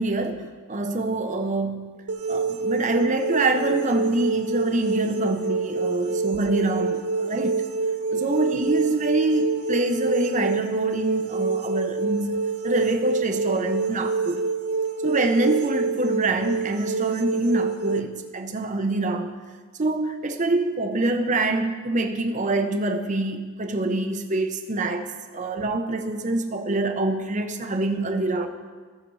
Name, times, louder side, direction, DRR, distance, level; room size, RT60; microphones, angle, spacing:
voice 1, 0.0-2.0 2.3-7.6 8.1-14.5 15.0-19.3 19.8-25.1 25.3-28.5, right 2 dB, 35° right, 5 dB, 0.7 m, -25 dB
sound 1, 2.1-18.0, right 4 dB, 85° right, 0.6 m, -27 dB
16.5 x 6.6 x 3.1 m, 1.5 s
head